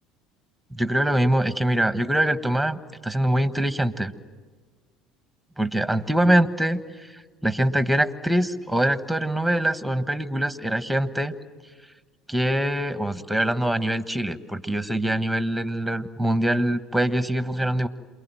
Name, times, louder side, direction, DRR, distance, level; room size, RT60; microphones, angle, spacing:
voice 1, 0.7-4.1 5.6-11.3 12.3-17.9, right 1 dB, ahead, 12 dB, 1.3 m, -24 dB
28.0 x 22.5 x 7.8 m, 1.5 s
hypercardioid pair, 70°, 0 cm